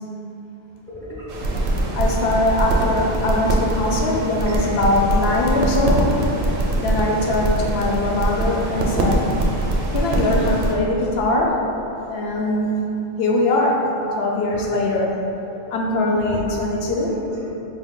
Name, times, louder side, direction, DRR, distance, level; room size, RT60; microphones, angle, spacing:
voice 1, 0.7-2.0 3.7-5.6 10.2-10.3 12.2-12.8 13.8-14.2 14.5-14.9 15.2-15.6 16.1-17.5, equal, 20° left, -7 dB, 0.4 m, -36 dB
sound 1, 1.3-10.7, right 1 dB, 65° right, 0.7 m, -22 dB
voice 2, 1.9-6.1 6.8-9.2 9.9-11.6 12.1-12.8 13.2-13.8 14.2-15.1 15.7-17.1, left 2 dB, 75° left, -1 dB, 0.8 m, -21 dB
4.4 x 2.2 x 3.6 m, 3.0 s
omnidirectional pair, 1.0 m